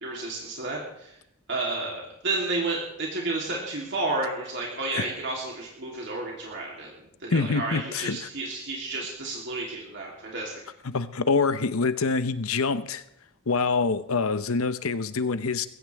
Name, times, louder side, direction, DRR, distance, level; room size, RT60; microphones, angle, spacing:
voice 1, 0.0-1.2 1.5-6.9 7.2-10.6, right 2 dB, 55° right, -3 dB, 3.3 m, -31 dB
voice 2, 7.3-8.3 10.8-13.0 13.5-15.7, left 4 dB, 75° left, 12 dB, 0.9 m, -25 dB
21.0 x 17.0 x 3.5 m, 0.77 s
head